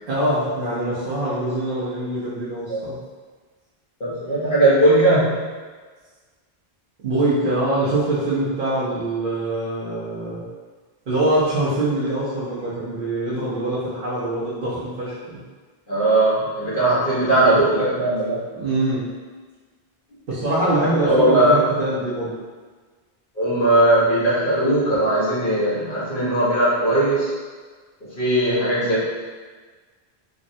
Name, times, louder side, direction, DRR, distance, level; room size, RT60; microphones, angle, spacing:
voice 1, 0.1-2.9 7.0-10.4 11.1-15.1 18.5-19.0 20.3-22.3, right 1 dB, 65° right, -10 dB, 0.9 m, -23 dB
voice 2, 4.0-5.4 15.9-18.4 21.0-21.6 23.4-27.3 28.0-29.0, right 1 dB, 55° left, -10 dB, 1.2 m, -18 dB
3.5 x 2.1 x 2.6 m, 1.4 s
omnidirectional pair, 1.0 m